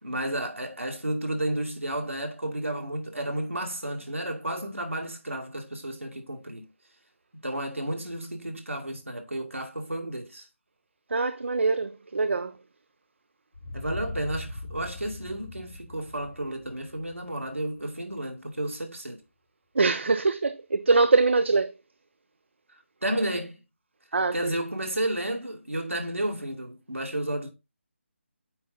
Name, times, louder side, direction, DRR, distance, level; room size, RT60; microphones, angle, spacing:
voice 1, 0.0-6.6 7.4-10.5 13.7-19.2 23.0-23.6 24.3-27.5, right 1 dB, 85° right, 2.2 m, -32 dB
voice 2, 11.1-12.5 19.8-21.7 24.1-24.3, right 3 dB, 65° right, 0.6 m, -23 dB
sound 1, 13.5-18.1, left 2 dB, 85° left, 3.3 m, -40 dB
8.7 x 4.1 x 3.8 m
figure-of-eight pair, 155°, 7 cm